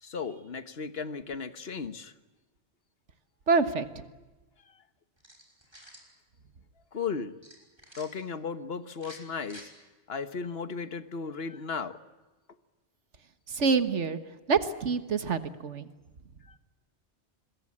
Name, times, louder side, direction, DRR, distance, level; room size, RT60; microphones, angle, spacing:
voice 1, 0.0-2.1 6.9-7.3 8.0-9.7 10.1-12.0 16.5-16.6, left 5 dB, 60° left, 11 dB, 1.5 m, -35 dB
voice 2, 3.5-4.0 13.5-14.2 14.5-15.9, right 5 dB, 85° right, 11 dB, 1.7 m, -26 dB
sound 1, 5.2-6.1 7.4-8.1 8.9-9.7, right 1 dB, 20° right, 6.0 m, -50 dB
26.5 x 21.5 x 8.7 m, 1.2 s
omnidirectional pair, 1.2 m